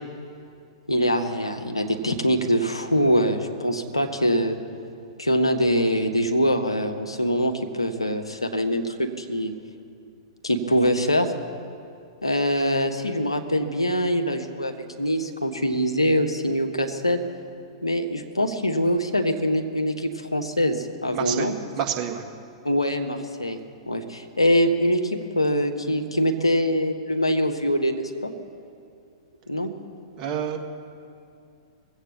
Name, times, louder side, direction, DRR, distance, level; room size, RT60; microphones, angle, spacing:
voice 1, 0.9-4.6 5.2-9.5 10.4-11.3 12.2-17.2 17.8-21.5 22.6-23.6 23.9-28.3 29.5-29.7, equal, 90° left, 5 dB, 1.1 m, -23 dB
voice 2, 21.1-22.3 30.2-30.6, right 9 dB, 30° right, 2 dB, 1.6 m, -29 dB
20.0 x 8.1 x 7.2 m, 2.5 s
figure-of-eight pair, 105°, 3 cm